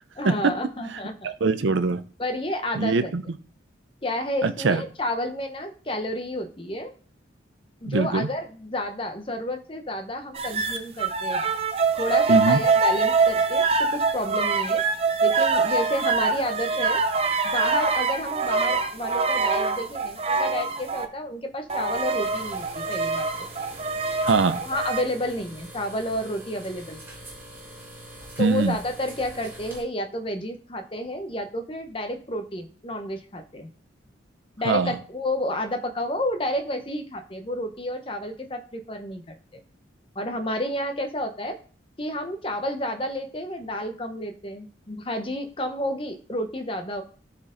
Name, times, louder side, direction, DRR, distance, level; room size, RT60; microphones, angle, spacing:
voice 1, 0.2-1.3 2.2-3.1 4.0-6.9 7.8-11.5 12.0-14.8 15.2-17.1 17.4-23.3 24.6-27.0 28.4-33.7 34.6-39.3 40.1-41.6 42.0-47.0, left 1 dB, 30° left, 6 dB, 0.9 m, -30 dB
voice 2, 1.2-2.0 2.8-3.2 4.4-4.8 7.8-8.3 12.3-12.6 24.2-24.6 28.4-28.8 34.6-35.0, right 3 dB, 80° right, 10 dB, 0.6 m, -22 dB
sound 1, 10.3-21.1 21.7-25.0, right 4 dB, 30° right, 0.7 m, -24 dB
sound 2, 22.2-29.8, right 1 dB, 10° right, 3.0 m, -44 dB
13.0 x 4.5 x 3.8 m, 0.41 s
head